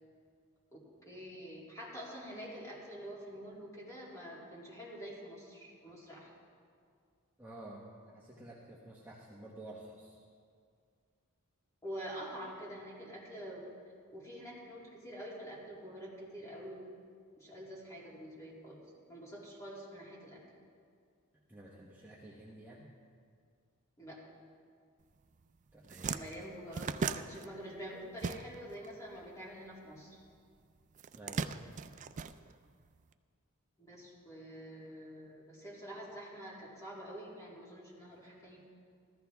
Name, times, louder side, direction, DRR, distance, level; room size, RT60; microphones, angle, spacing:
voice 1, 0.7-6.3 11.8-13.6 14.1-16.8 17.4-18.8 19.1-20.4 24.0-24.2 26.0-30.2 33.8-38.7, equal, 15° left, -5 dB, 2.7 m, -47 dB
voice 2, 7.4-10.2 21.5-22.9 25.7-26.2 31.1-31.7 38.1-38.5, right 1 dB, 10° right, -5 dB, 1.0 m, -51 dB
sound 1, 25.3-25.4 25.7-28.9 29.1-30.3 30.9-33.0, right 5 dB, 35° right, 0.3 m, -38 dB
14.5 x 13.5 x 3.5 m, 2.2 s
head